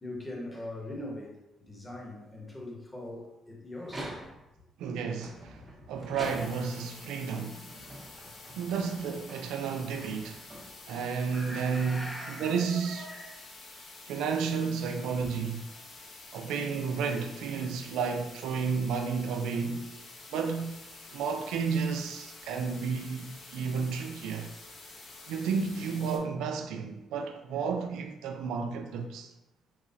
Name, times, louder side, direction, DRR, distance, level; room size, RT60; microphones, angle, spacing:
voice 1, 0.0-4.2 5.6-5.7 11.3-13.4 15.2-15.5, left 1 dB, 15° left, 1.0 m, -42 dB
sound 1, 3.8-4.6 5.2-6.9 7.5-11.1, right 1 dB, 30° right, 0.9 m, -45 dB
voice 2, 4.8-5.6 5.9-7.7 8.5-10.4 10.9-13.1 14.1-15.6 16.3-19.9 20.3-20.7 21.1-24.5 25.3-29.3, right 5 dB, 90° right, 0.4 m, -32 dB
sound 2, 6.2-26.2, left 3 dB, 60° left, 0.7 m, -49 dB
3.6 x 3.1 x 2.7 m
cardioid pair, 90°, 0 cm